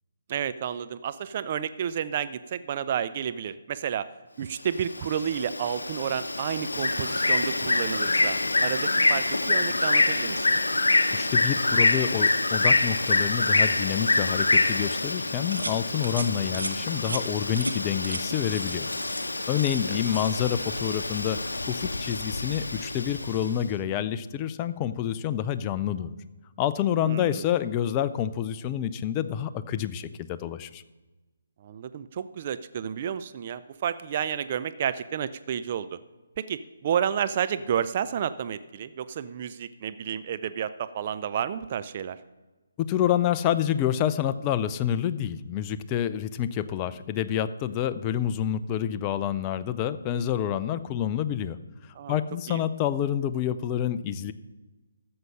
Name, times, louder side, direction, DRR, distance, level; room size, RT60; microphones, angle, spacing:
voice 1, 0.3-4.1 4.4-10.6 19.9-20.2 27.0-27.4 31.6-36.0 36.4-42.2 52.0-52.2 52.5-52.6, right 8 dB, 40° right, 13 dB, 0.5 m, -31 dB
Bird, 4.7-23.5, left 2 dB, 75° left, 0.8 m, -26 dB
voice 2, 11.1-18.9 19.5-26.2 26.6-30.8 42.8-51.6 52.1-54.3, left 10 dB, 25° left, 13 dB, 0.5 m, -28 dB
sound 1, 15.5-15.8 16.0-16.3 16.5-16.7 17.0-17.2 17.6-17.7 18.0-18.2 18.5-18.7 19.0-19.8 20.1-20.3, right 2 dB, 80° right, 1.2 m, -35 dB
13.0 x 7.8 x 5.5 m, 1.2 s
figure-of-eight pair, 140°, 0 cm